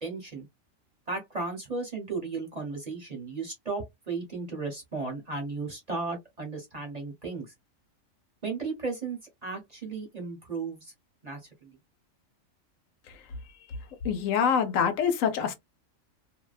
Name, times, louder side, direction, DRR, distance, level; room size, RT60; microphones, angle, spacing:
voice 1, 0.0-0.5 1.1-7.5 8.4-10.9 11.2-11.7, right 4 dB, 35° right, 0.8 m, -35 dB
voice 2, 14.0-15.5, left 7 dB, 80° left, 1.0 m, -25 dB
2.5 x 2.1 x 2.3 m
omnidirectional pair, 1.4 m